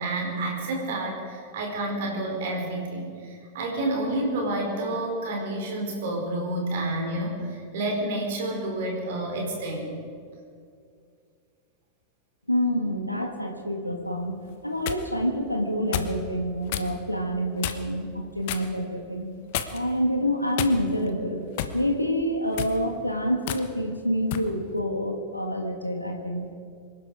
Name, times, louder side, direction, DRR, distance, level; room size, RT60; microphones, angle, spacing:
voice 1, 0.0-9.9, right 1 dB, 55° right, 1 dB, 4.4 m, -29 dB
voice 2, 12.5-14.3 14.6-19.3 19.7-21.5 21.7-26.5, equal, 90° left, 3 dB, 1.6 m, -27 dB
sound 1, 14.5-15.0 15.9-16.2 16.7-16.9 17.6-18.0 18.5-18.7 19.5-19.9 20.6-21.1 21.6-21.8 22.5-22.8 23.5-23.6 24.3-24.5, left 11 dB, 50° left, 1.0 m, -31 dB
25.5 x 11.5 x 4.9 m, 2.3 s
figure-of-eight pair, 90°, 0 cm